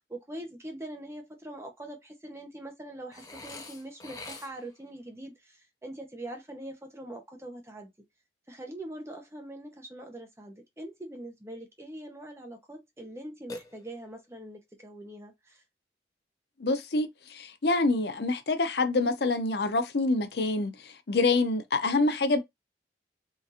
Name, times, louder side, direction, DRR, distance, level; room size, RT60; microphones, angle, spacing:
voice 1, 0.0-7.9 8.5-15.6, right 1 dB, 15° right, 0.7 m, -43 dB
Burping eructation, 3.1-4.8 13.5-14.3, left 2 dB, 20° left, 0.6 m, -44 dB
voice 2, 16.6-20.7 21.1-22.4, left 3 dB, 70° left, 0.6 m, -26 dB
3.8 x 2.5 x 2.8 m
head